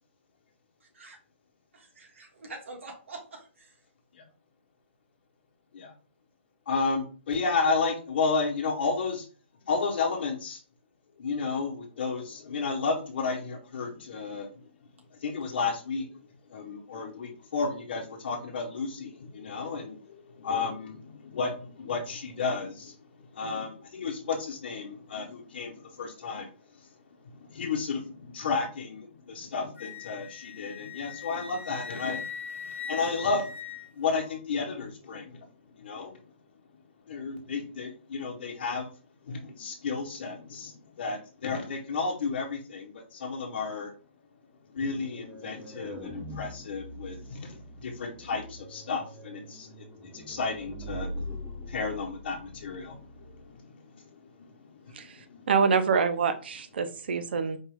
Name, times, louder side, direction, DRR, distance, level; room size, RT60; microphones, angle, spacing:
voice 1, 0.8-1.2 1.7-3.8, right 3 dB, 85° right, 0 dB, 1.7 m, -45 dB
voice 2, 6.7-9.2 9.7-10.6 11.2-14.5 15.2-16.1 16.5-20.0 20.3-22.9 23.3-26.5 27.4-32.2 32.9-33.5 33.9-35.5 35.7-36.1 37.1-38.9 39.3-43.9 44.7-49.7 50.0-51.1 51.7-54.1 54.4-55.4, left 4 dB, 50° left, -1 dB, 1.0 m, -32 dB
Wind instrument woodwind instrument, 29.8-34.4, left 6 dB, 70° left, 0.8 m, -40 dB
sound 1, 44.8-53.6, equal, ahead, 0.4 m, -42 dB
voice 3, 55.5-57.6, right 5 dB, 55° right, 9 dB, 0.6 m, -26 dB
4.3 x 2.3 x 3.5 m, 0.38 s
hypercardioid pair, 170°, 7 cm